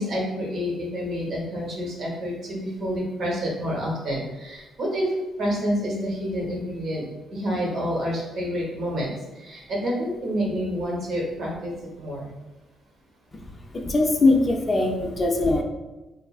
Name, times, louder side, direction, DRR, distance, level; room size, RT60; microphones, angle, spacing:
voice 1, 0.0-5.1 5.4-7.0 7.3-12.3, equal, 65° right, -3 dB, 0.9 m, -28 dB
voice 2, 13.6-15.6, left 2 dB, 35° left, 2 dB, 0.4 m, -21 dB
3.0 x 2.4 x 2.3 m, 1.1 s
cardioid pair, 90°, 0 cm